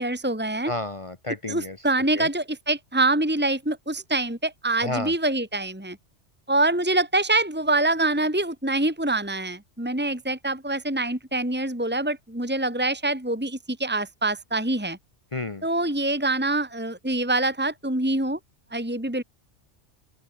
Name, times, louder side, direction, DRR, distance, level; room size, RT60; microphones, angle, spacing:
voice 1, 0.0-0.7 1.5-6.0 6.5-15.0 15.6-18.4 18.7-19.2, right 2 dB, 10° right, 2.5 m, -25 dB
voice 2, 0.7-1.8 2.1-2.3 4.8-5.1 15.3-15.6, left 2 dB, 30° left, 0.9 m, -31 dB
open air
omnidirectional pair, 1.2 m